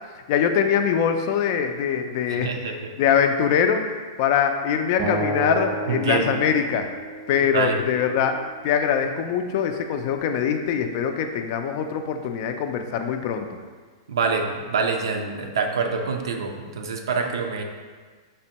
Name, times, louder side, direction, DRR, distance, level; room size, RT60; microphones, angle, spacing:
voice 1, 0.3-2.5 3.0-6.9 7.3-13.5, left 7 dB, 50° left, 7 dB, 0.3 m, -23 dB
voice 2, 2.3-2.9 5.9-6.3 7.5-7.8 14.1-17.6, right 5 dB, 85° right, 4 dB, 0.4 m, -26 dB
Acoustic guitar, 5.0-8.2, right 2 dB, 25° right, 0.4 m, -32 dB
5.1 x 2.1 x 2.8 m, 1.5 s
hypercardioid pair, 140°, 2 cm